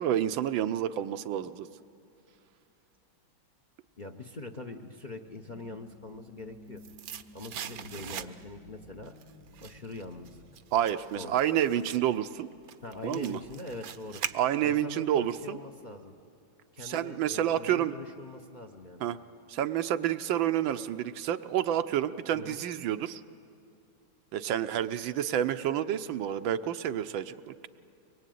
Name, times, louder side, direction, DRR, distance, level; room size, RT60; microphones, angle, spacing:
voice 1, 0.0-1.7 10.7-12.5 13.0-13.4 14.3-15.6 16.8-17.9 19.0-19.2 19.5-23.2 24.3-27.7, right 11 dB, 85° right, 10 dB, 1.5 m, -29 dB
voice 2, 4.0-6.8 7.3-9.1 9.6-10.4 11.2-11.4 12.8-14.2 14.6-16.1 16.7-19.0 22.3-22.6, left 3 dB, 35° left, 6 dB, 0.7 m, -43 dB
sound 1, 5.0-11.5, left 1 dB, 75° left, 4.8 m, -54 dB
sound 2, 6.3-8.7 9.0-14.9 15.2-15.3, right 9 dB, 60° right, 1.0 m, -42 dB
24.0 x 22.0 x 9.3 m, 2.6 s
omnidirectional pair, 2.1 m